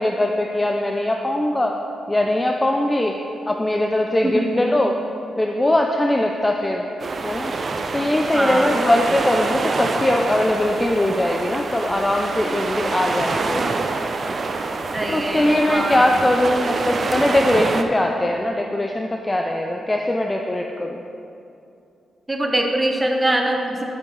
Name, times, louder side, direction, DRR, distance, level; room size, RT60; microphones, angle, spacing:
voice 1, 0.0-1.8 2.1-3.2 3.5-5.0 5.4-6.8 7.2-7.5 7.9-13.6 15.1-21.0, left 1 dB, 20° left, 2 dB, 0.5 m, -21 dB
voice 2, 4.2-4.6 8.3-8.7 14.9-16.0 22.3-23.8, right 1 dB, 20° right, 2 dB, 1.1 m, -22 dB
sound 1, 7.0-17.8, right 3 dB, 50° right, 0.5 m, -26 dB
9.5 x 7.0 x 3.3 m, 2.6 s
cardioid pair, 65°, 0 cm